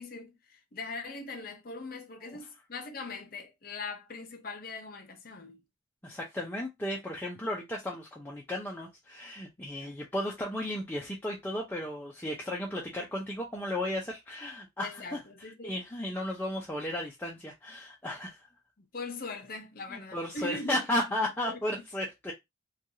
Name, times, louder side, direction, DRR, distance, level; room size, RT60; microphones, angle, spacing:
voice 1, 0.0-5.6 9.6-10.0 14.8-15.8 18.8-20.9 21.2-21.8, left 3 dB, 50° left, 0.7 m, -41 dB
voice 2, 6.0-15.2 15.6-18.4 19.9-22.3, left 1 dB, 10° left, 0.5 m, -34 dB
3.1 x 2.3 x 2.6 m
head